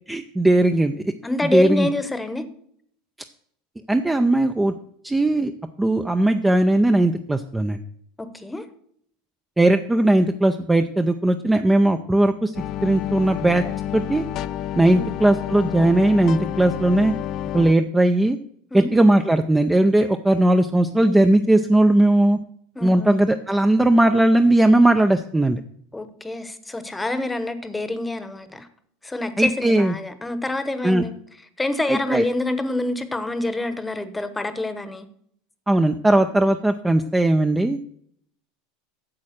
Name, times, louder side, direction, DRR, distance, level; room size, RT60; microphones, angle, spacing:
voice 1, 0.1-1.1 1.5-1.9 3.9-4.7 5.0-5.5 5.8-7.8 9.6-12.5 12.8-13.6 13.9-14.2 14.7-17.1 17.5-18.4 18.7-22.4 22.8-25.6 29.4-29.9 30.8-31.1 31.9-32.2 35.7-37.8, right 1 dB, 10° right, 7 dB, 0.5 m, -18 dB
voice 2, 1.2-2.5 8.2-8.6 14.9-15.1 18.7-18.9 22.8-23.2 25.9-28.7 29.0-31.1 31.6-35.1, left 2 dB, 10° left, 12 dB, 1.0 m, -27 dB
sound 1, 12.5-17.7, left 11 dB, 45° left, 0.4 m, -30 dB
8.7 x 7.2 x 6.5 m, 0.67 s
supercardioid pair, 125°, 0 cm